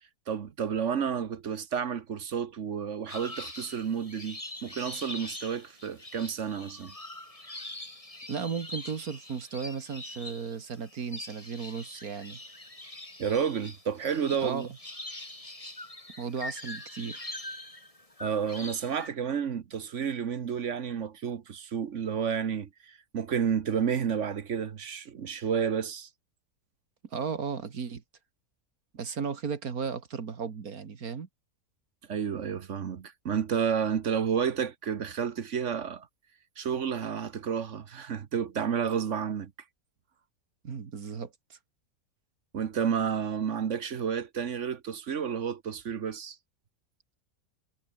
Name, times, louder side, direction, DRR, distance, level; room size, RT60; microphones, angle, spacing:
voice 1, 0.3-6.9 13.2-14.7 18.2-26.1 32.1-36.1 36.6-39.5 42.5-46.4, right 7 dB, 55° right, 1.3 m, -31 dB
sound 1, 3.1-19.1, left 1 dB, 20° left, 3.4 m, -43 dB
voice 2, 8.3-12.4 14.4-14.7 16.2-17.3 27.1-28.0 28.9-31.3 40.6-41.6, right 6 dB, 75° right, 2.2 m, -35 dB
omnidirectional pair, 1.6 m